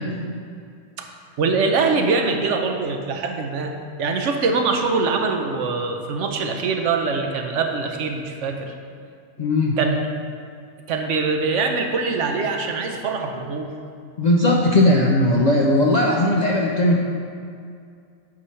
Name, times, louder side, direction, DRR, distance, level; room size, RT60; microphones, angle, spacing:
voice 1, 1.4-3.7 4.0-8.7 9.8-10.1 10.9-13.7, right 4 dB, 70° right, 4 dB, 1.0 m, -23 dB
voice 2, 9.4-9.8 14.2-17.0, left 1 dB, 55° left, -2 dB, 0.5 m, -18 dB
8.5 x 3.2 x 5.6 m, 2.3 s
omnidirectional pair, 1.3 m